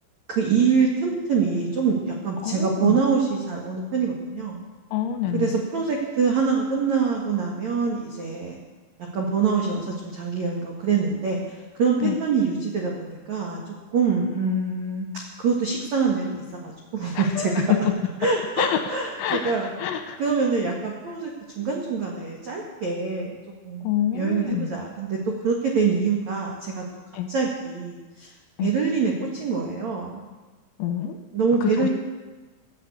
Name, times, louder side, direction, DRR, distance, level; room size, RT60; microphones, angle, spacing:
voice 1, 0.3-4.6 5.3-8.6 9.1-11.4 11.8-13.6 13.9-15.1 15.4-17.6 18.2-19.7 20.2-21.3 21.5-23.4 23.6-23.9 24.1-25.2 25.4-26.8 27.3-28.3 28.6-30.2 31.3-31.9, right 5 dB, 85° right, -1 dB, 1.6 m, -25 dB
voice 2, 2.4-3.0 4.9-5.6 12.0-12.1 17.1-17.8 18.6-20.2 23.8-24.7 27.1-27.3 28.6-28.7 30.8-31.2 31.6-31.9, left 10 dB, 80° left, 6 dB, 3.0 m, -27 dB
15.5 x 8.8 x 8.3 m, 1.2 s
omnidirectional pair, 6.0 m